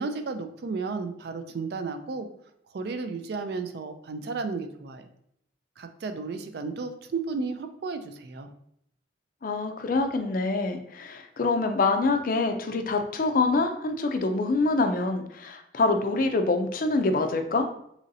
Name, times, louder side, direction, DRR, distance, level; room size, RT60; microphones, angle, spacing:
voice 1, 0.0-2.3 2.7-5.1 5.8-8.5, right 4 dB, 55° right, 8 dB, 0.3 m, -33 dB
voice 2, 9.4-17.7, left 3 dB, 45° left, 6 dB, 0.4 m, -25 dB
3.9 x 3.0 x 2.6 m, 0.72 s
head